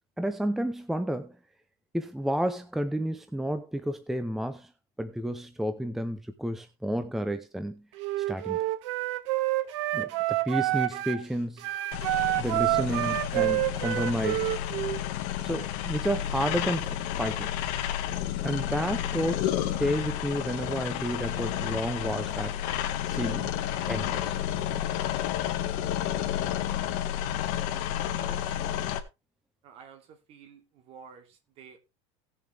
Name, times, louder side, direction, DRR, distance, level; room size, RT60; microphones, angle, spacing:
voice 1, 0.2-1.3 1.9-4.7 5.0-7.8 8.3-8.6 9.9-11.6 12.4-14.6 15.4-17.5 18.4-19.5 19.8-22.6 23.1-23.5 23.9-24.4, equal, ahead, 0.7 m, -31 dB
Wind instrument woodwind instrument, 8.0-11.2 11.6-15.0, right 17 dB, 85° right, 1.5 m, -28 dB
sound 1, 11.9-29.0, left 11 dB, 55° left, 1.8 m, -31 dB
voice 2, 27.2-27.7 28.2-28.9 29.6-31.8, right 7 dB, 40° right, 2.8 m, -51 dB
18.0 x 7.3 x 3.4 m
supercardioid pair, 155°, 15 cm